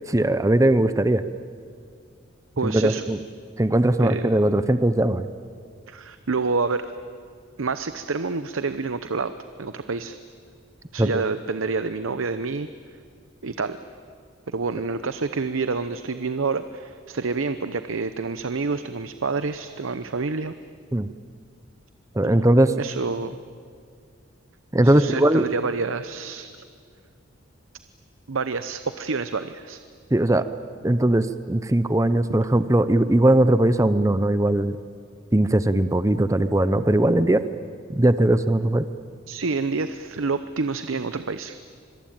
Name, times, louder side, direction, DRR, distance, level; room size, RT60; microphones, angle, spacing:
voice 1, 0.1-1.2 2.6-3.2 3.6-5.3 11.0-11.1 20.9-21.1 22.1-22.7 24.7-25.5 30.1-30.4 30.8-34.8 35.3-37.4 37.9-38.9, right 1 dB, 15° right, 12 dB, 0.6 m, -19 dB
voice 2, 2.6-3.0 4.0-4.3 5.9-6.9 7.6-9.3 9.6-10.2 10.9-12.7 13.4-13.8 14.5-20.5 22.2-22.5 22.7-23.4 24.8-26.5 28.3-29.8 39.3-41.6, right 4 dB, 85° right, 11 dB, 0.8 m, -28 dB
25.5 x 22.0 x 8.9 m, 2.2 s
head